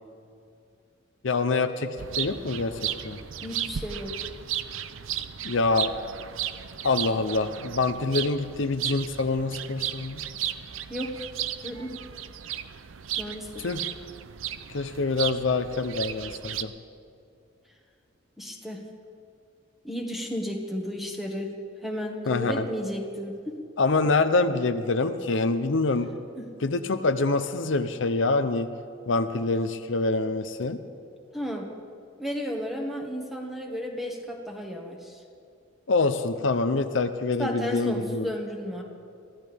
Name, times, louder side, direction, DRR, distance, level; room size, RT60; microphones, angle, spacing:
voice 1, 1.2-3.2 5.4-5.9 6.8-10.2 13.6-13.8 14.7-16.7 22.3-22.6 23.8-26.1 26.6-28.7 29.1-30.8 35.9-38.3, left 3 dB, 70° left, 9 dB, 0.7 m, -25 dB
sound 1, 2.0-16.6, right 10 dB, 90° right, 0.6 m, -35 dB
voice 2, 3.4-4.1 10.9-11.3 11.6-11.9 13.2-13.7 18.4-18.8 19.8-21.5 21.8-23.6 26.4-26.5 31.3-31.7 32.2-35.2 37.4-38.8, equal, ahead, 0 dB, 1.7 m, -33 dB
23.0 x 15.5 x 3.5 m, 2.6 s
head